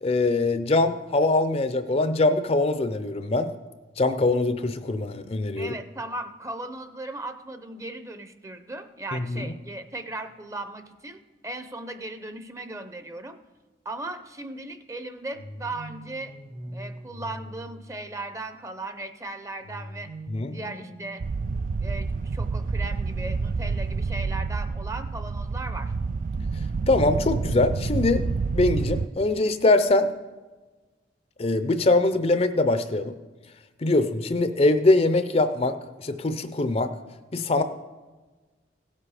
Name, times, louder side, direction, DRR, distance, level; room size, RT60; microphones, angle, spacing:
voice 1, 0.0-3.5 4.0-5.7 9.1-9.5 20.3-20.6 26.9-28.2 28.5-30.1 31.4-33.1 33.8-35.7 36.0-36.9 37.3-37.6, left 2 dB, 35° left, 11 dB, 0.6 m, -22 dB
voice 2, 5.6-13.4 13.8-16.3 16.7-20.1 20.5-21.2 21.8-25.9, right 2 dB, 20° right, 9 dB, 0.7 m, -37 dB
sound 1, 15.3-18.4 19.6-22.5, right 1 dB, 80° right, 1.9 m, -43 dB
sound 2, 21.2-29.1, right 4 dB, 45° right, 0.3 m, -28 dB
16.5 x 7.6 x 4.9 m, 1.3 s
head